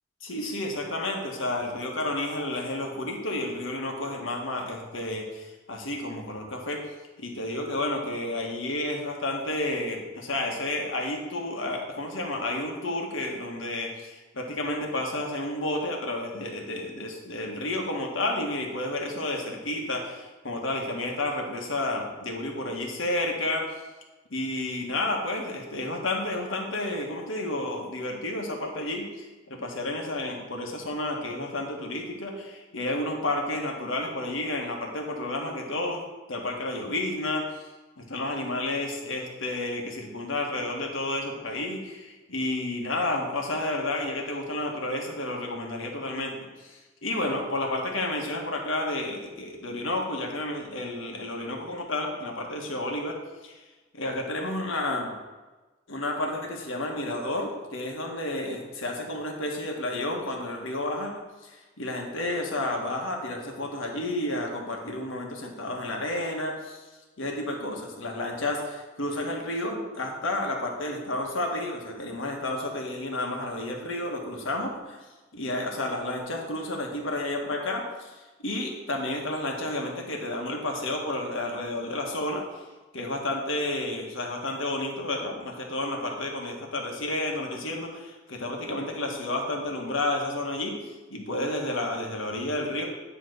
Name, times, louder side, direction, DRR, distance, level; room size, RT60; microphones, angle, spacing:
voice 1, 0.2-6.8 7.2-23.7 24.3-36.0 36.3-37.6 38.0-53.2 53.4-53.6 53.9-55.1 55.9-61.1 61.4-66.8 67.2-75.0 75.3-82.4 82.9-92.9, left 1 dB, 75° left, 1 dB, 1.5 m, -31 dB
10.0 x 3.4 x 6.6 m, 1.2 s
head